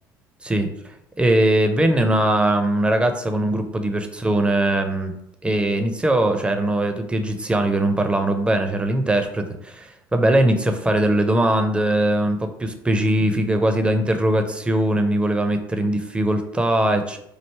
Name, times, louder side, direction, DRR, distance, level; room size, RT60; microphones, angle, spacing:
voice 1, 0.4-5.1 5.4-17.2, right 1 dB, 10° right, 6 dB, 0.5 m, -21 dB
3.2 x 2.6 x 4.3 m, 0.77 s
hypercardioid pair, 65°, 11 cm